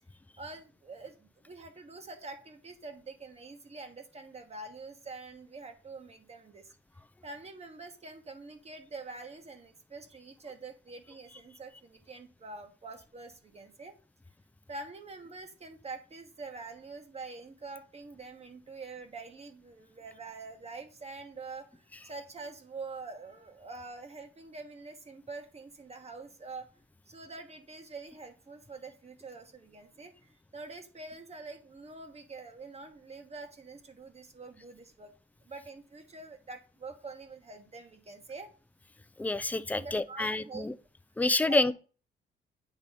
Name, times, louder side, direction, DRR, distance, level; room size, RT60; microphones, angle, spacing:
voice 1, 0.4-6.7 7.2-13.9 14.7-26.7 27.1-35.1 35.4-38.5 39.8-40.7 41.4-41.7, right 3 dB, 30° right, 1.1 m, -45 dB
voice 2, 39.2-40.7 41.2-41.7, left 2 dB, 10° left, 0.4 m, -28 dB
8.3 x 3.0 x 5.2 m
cardioid pair, 90°, 20 cm